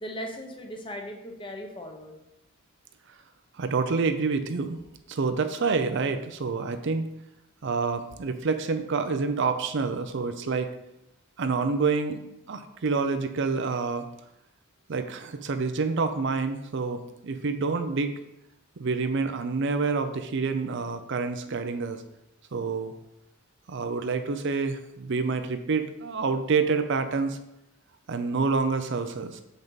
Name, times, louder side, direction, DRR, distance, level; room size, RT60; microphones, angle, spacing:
voice 1, 0.0-2.2, equal, 20° left, 2 dB, 0.9 m, -38 dB
voice 2, 3.6-4.8 5.1-7.1 7.6-10.7 11.4-14.1 14.9-18.2 18.8-22.0 22.5-22.9 23.7-27.4 28.1-29.4, right 4 dB, 55° right, 8 dB, 0.5 m, -27 dB
7.3 x 5.3 x 4.0 m, 0.86 s
head